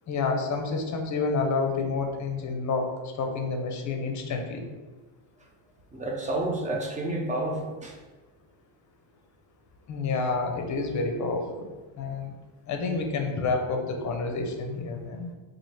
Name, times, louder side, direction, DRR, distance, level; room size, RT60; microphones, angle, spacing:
voice 1, 0.1-2.9 3.2-4.6 9.9-12.3 12.7-15.3, left 4 dB, 35° left, 4 dB, 0.6 m, -29 dB
voice 2, 5.9-8.0, right 2 dB, 20° right, 0 dB, 0.3 m, -30 dB
3.0 x 2.6 x 4.3 m, 1.3 s
cardioid pair, 125°, 50 cm